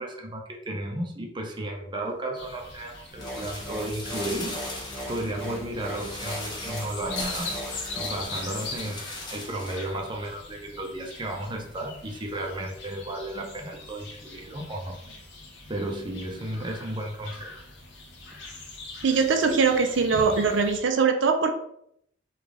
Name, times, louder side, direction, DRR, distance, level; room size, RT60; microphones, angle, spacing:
voice 1, 0.0-4.6 5.1-7.6 7.9-9.0 9.3-15.0 15.7-17.5, right 1 dB, 25° right, 1 dB, 0.5 m, -34 dB
sound 1, 2.4-20.8, left 3 dB, 65° left, 0.8 m, -42 dB
sound 2, 3.1-8.2, equal, 5° left, 1.3 m, -38 dB
sound 3, 3.2-9.9 10.2-10.3, left 2 dB, 25° left, 0.8 m, -39 dB
voice 2, 19.0-21.5, right 5 dB, 75° right, 5 dB, 0.5 m, -22 dB
3.3 x 2.4 x 3.6 m, 0.70 s
head